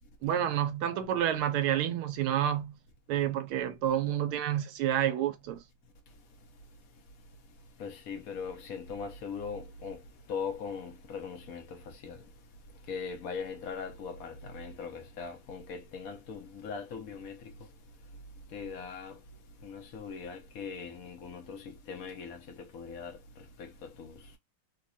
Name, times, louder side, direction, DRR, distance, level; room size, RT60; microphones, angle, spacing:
voice 1, 0.2-2.7 3.1-5.6, right 10 dB, 85° right, 1.6 m, -29 dB
voice 2, 7.8-10.0 10.3-12.2 12.9-17.4 18.5-19.2 19.6-24.2, left 5 dB, 60° left, 0.9 m, -40 dB
3.9 x 2.2 x 2.5 m
omnidirectional pair, 2.4 m